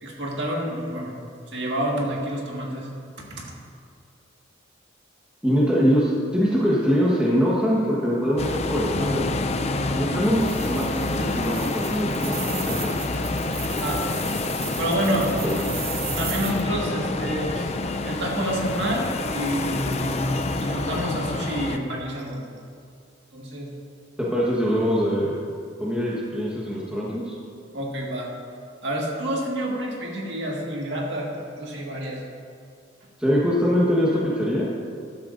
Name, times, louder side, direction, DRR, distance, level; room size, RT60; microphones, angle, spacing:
voice 1, 0.0-1.1 1.5-2.9 3.2-3.5 13.7-14.0 14.8-15.3 16.2-17.7 18.0-22.5 23.3-23.7 27.7-28.3 28.8-32.2, right 1 dB, 65° right, -2 dB, 1.9 m, -28 dB
voice 2, 5.4-9.2 9.9-12.9 15.4-15.7 24.2-25.3 25.8-27.4 33.2-34.7, equal, 5° right, -6 dB, 1.3 m, -23 dB
sound 1, 8.4-21.8, left 2 dB, 35° left, 0.4 m, -27 dB
sound 2, 10.3-16.6, right 9 dB, 50° right, 0.8 m, -37 dB
13.5 x 11.5 x 2.6 m, 2.3 s
head